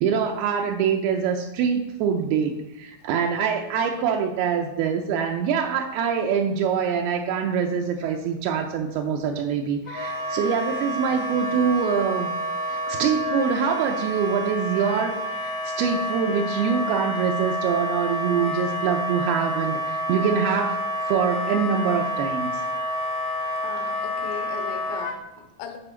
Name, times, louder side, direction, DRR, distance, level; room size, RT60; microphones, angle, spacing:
voice 1, 0.0-12.3 12.7-22.7, right 6 dB, 85° right, 2 dB, 2.2 m, -24 dB
Wind instrument woodwind instrument, 9.9-25.1, equal, 65° left, 1.0 m, -29 dB
voice 2, 23.6-25.8, left 7 dB, 85° left, 5 dB, 3.2 m, -38 dB
9.8 x 4.9 x 4.5 m, 0.94 s
omnidirectional pair, 5.1 m